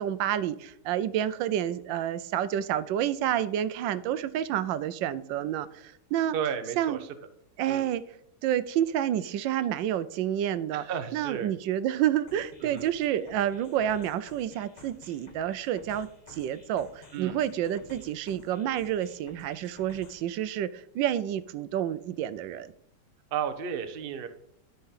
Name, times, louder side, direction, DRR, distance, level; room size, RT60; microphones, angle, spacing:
voice 1, 0.0-6.4 6.8-7.0 7.6-8.0 8.4-10.8 11.1-22.7, right 11 dB, 85° right, 1.3 m, -29 dB
voice 2, 6.3-7.0 7.7-7.8 10.7-11.5 12.6-12.9 17.1-17.4 23.3-24.3, right 8 dB, 45° right, 0.7 m, -33 dB
sound 1, 12.3-20.3, left 3 dB, 30° left, 1.0 m, -53 dB
12.5 x 4.4 x 5.7 m
omnidirectional pair, 2.0 m